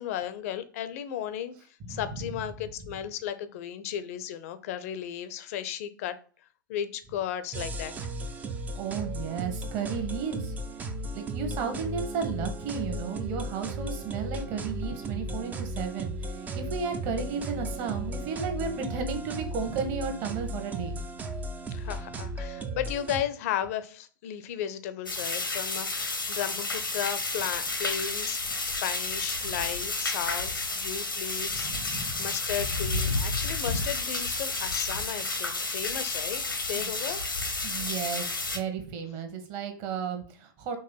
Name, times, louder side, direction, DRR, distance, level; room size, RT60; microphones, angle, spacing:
voice 1, 0.0-1.5 1.9-6.1 6.7-7.9 21.7-28.4 28.8-37.2, left 10 dB, 45° left, 0.7 m, -35 dB
sound 1, 7.5-23.2, right 1 dB, 15° right, 0.5 m, -35 dB
voice 2, 8.7-21.0 31.5-32.2 36.8-36.9 37.6-40.8, right 6 dB, 35° right, 1.3 m, -34 dB
sound 2, 25.1-38.6, left 3 dB, 80° left, 1.1 m, -31 dB
5.5 x 3.3 x 5.5 m
figure-of-eight pair, 100°, 11 cm